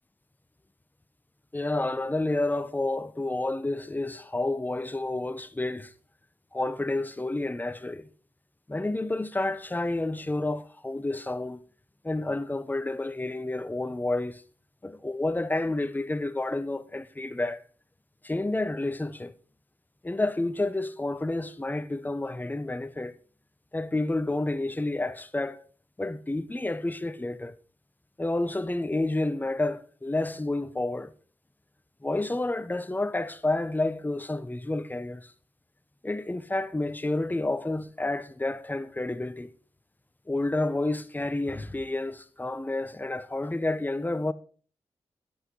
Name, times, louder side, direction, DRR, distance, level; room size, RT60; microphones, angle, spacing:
voice 1, 1.5-5.9 6.5-8.1 8.7-11.6 12.0-14.4 14.8-17.6 18.2-19.3 20.0-23.1 23.7-25.6 26.0-27.6 28.2-31.1 32.0-35.3 36.0-39.5 40.3-44.3, left 2 dB, 15° left, 1.1 m, -30 dB
11.0 x 8.6 x 5.5 m
cardioid pair, 50°, 10 cm